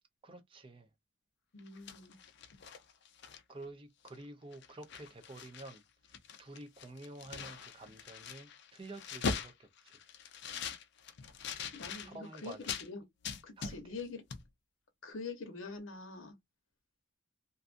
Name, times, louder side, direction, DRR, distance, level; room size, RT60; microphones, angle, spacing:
voice 1, 0.2-0.9 3.5-5.8 6.4-10.0 12.0-12.7 13.6-13.8, right 2 dB, 25° right, 0.5 m, -50 dB
voice 2, 1.5-2.2 11.7-13.0 13.4-14.2 15.0-16.3, left 4 dB, 75° left, 0.8 m, -45 dB
sound 1, 1.6-3.7 4.1-4.2 4.5-5.8 6.0-12.9 13.2-14.1 14.3-14.4, left 5 dB, 55° left, 0.4 m, -42 dB
2.6 x 2.4 x 2.4 m
head